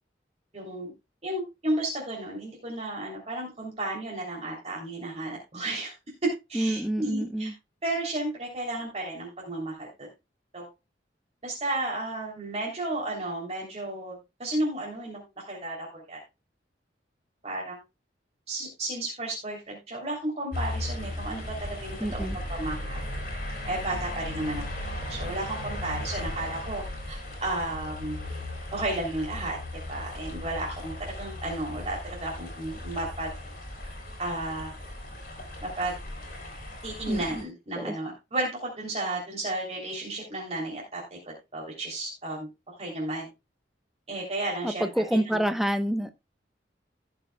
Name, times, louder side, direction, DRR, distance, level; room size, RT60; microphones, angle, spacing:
voice 1, 0.5-0.9 1.2-5.9 6.2-7.5 7.8-10.1 10.5-10.7 11.4-16.2 17.4-17.8 18.5-23.0 23.7-24.6 25.1-28.2 28.7-33.3 34.2-34.7 35.6-35.9 36.8-43.3 44.1-44.9 45.3-45.4, right 2 dB, 35° right, 3.3 m, -33 dB
voice 2, 6.5-7.5 22.0-22.4 37.0-37.4 37.8-38.0 44.6-46.1, right 1 dB, ahead, 0.9 m, -27 dB
sound 1, 20.5-37.4, left 1 dB, 50° left, 4.2 m, -37 dB
17.0 x 6.8 x 2.3 m
head